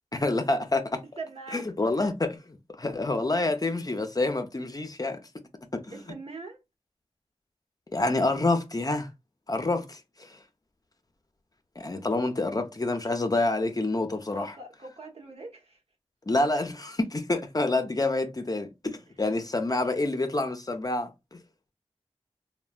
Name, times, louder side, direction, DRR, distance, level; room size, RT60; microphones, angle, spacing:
voice 1, 0.1-1.0 1.5-5.2 5.7-6.0 7.9-9.1 9.5-10.4 11.8-14.5 16.3-21.1, left 2 dB, 35° left, 0.5 m, -27 dB
voice 2, 1.2-1.7 5.9-6.6 14.3-15.8, right 3 dB, 65° right, 1.0 m, -42 dB
3.1 x 2.1 x 2.3 m
wide cardioid pair, 55°, 11 cm